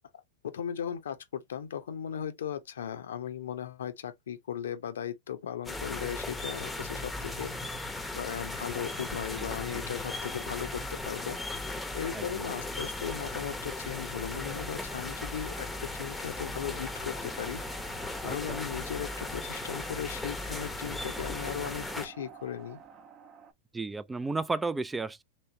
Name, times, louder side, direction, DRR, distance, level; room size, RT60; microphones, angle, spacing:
voice 1, 0.4-7.5 8.1-11.4 11.9-17.6 18.2-22.8, left 9 dB, 80° left, 0.7 m, -37 dB
sound 1, 5.7-22.1, left 2 dB, 10° left, 0.8 m, -37 dB
sound 2, 8.6-23.5, right 5 dB, 40° right, 0.8 m, -51 dB
voice 2, 9.4-9.8 12.1-12.5 18.2-18.6 23.7-25.2, right 3 dB, 10° right, 0.3 m, -34 dB
3.1 x 3.1 x 2.7 m
hypercardioid pair, 105°, 0 cm